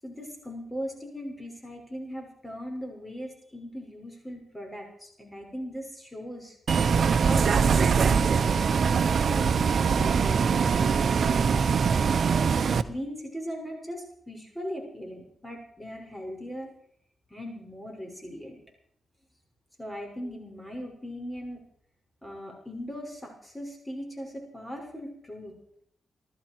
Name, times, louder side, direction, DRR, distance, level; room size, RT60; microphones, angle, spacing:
voice 1, 0.0-6.6 7.1-11.5 12.6-16.7 17.3-18.6 19.8-21.6 22.2-25.5, equal, 10° left, 1 dB, 6.1 m, -39 dB
Bus, 6.7-12.8, right 6 dB, 60° right, 0.8 m, -22 dB
20.0 x 14.0 x 4.7 m, 0.64 s
supercardioid pair, 55°, 0 cm